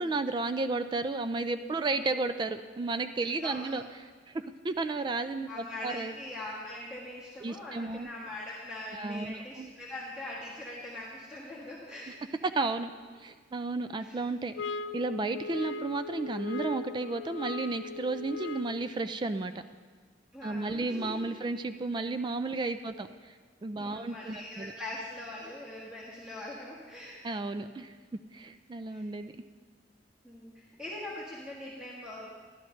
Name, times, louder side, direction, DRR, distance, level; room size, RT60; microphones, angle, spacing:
voice 1, 0.0-3.8 4.3-6.1 7.4-8.1 8.9-9.7 12.4-12.9 13.2-14.5 14.9-19.5 20.4-23.1 23.6-24.7 27.2-27.9 28.3-29.3, right 3 dB, 25° right, 10 dB, 0.3 m, -33 dB
voice 2, 3.4-3.8 5.5-12.2 14.0-14.2 20.3-21.4 22.6-23.0 23.8-27.3 28.9-29.0 30.2-32.3, left 1 dB, 5° right, -8 dB, 1.5 m, -42 dB
sound 1, 14.6-18.9, left 4 dB, 70° left, 0.4 m, -38 dB
12.0 x 11.5 x 3.2 m, 1.5 s
head